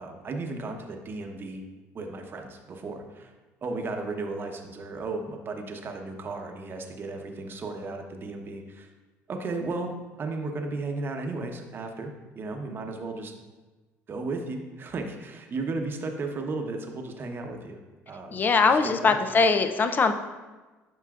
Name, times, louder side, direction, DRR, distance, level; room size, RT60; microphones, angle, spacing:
voice 1, 0.0-1.6 1.9-3.3 3.6-8.9 9.3-9.9 10.2-13.3 14.1-17.8 18.1-19.2, right 3 dB, 40° right, 4 dB, 0.9 m, -35 dB
voice 2, 18.3-20.1, left 4 dB, 35° left, 8 dB, 0.5 m, -21 dB
9.2 x 5.6 x 2.4 m, 1.2 s
supercardioid pair, 90°, 6 cm